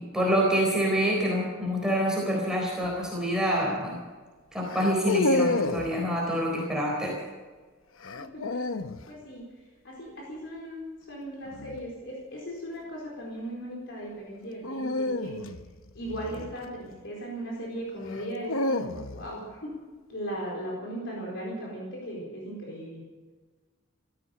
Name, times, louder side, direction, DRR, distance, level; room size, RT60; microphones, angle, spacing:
voice 1, 0.0-4.0 4.5-7.2, equal, 5° right, -3 dB, 4.0 m, -26 dB
sound 1, 2.8-3.1 4.7-5.9 8.0-9.0 11.5-11.8 14.6-17.0 18.1-19.4, left 2 dB, 80° left, 0.9 m, -30 dB
voice 2, 8.1-8.6 9.1-9.4 9.8-15.3 15.9-19.7 20.1-23.0, right 1 dB, 65° left, -3 dB, 4.4 m, -37 dB
15.5 x 14.0 x 6.6 m, 1.4 s
head